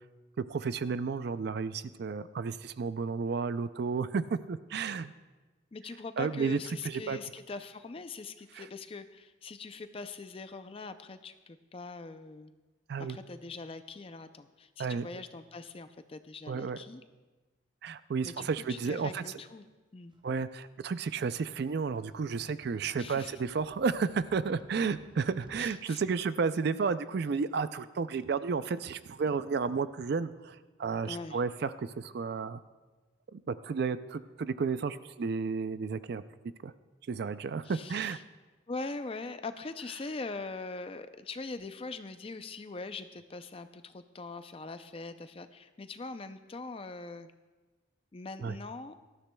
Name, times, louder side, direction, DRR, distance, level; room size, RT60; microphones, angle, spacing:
voice 1, 0.4-5.1 6.2-7.2 8.5-8.7 12.9-13.2 14.8-15.1 16.5-16.8 17.8-19.2 20.2-32.6 33.3-36.2 36.6-36.7 37.1-38.2 48.4-48.5, right 5 dB, 50° right, 14 dB, 0.3 m, -32 dB
voice 2, 5.7-12.5 13.0-17.0 18.2-19.7 19.9-20.1 23.0-23.3 25.6-26.0 31.1-31.4 37.6-38.2 38.7-47.3 48.1-48.9, left 3 dB, 25° left, 10 dB, 0.4 m, -42 dB
sound 1, 20.1-25.7, right 1 dB, 25° right, 0.7 m, -58 dB
18.0 x 13.0 x 2.2 m, 1.2 s
head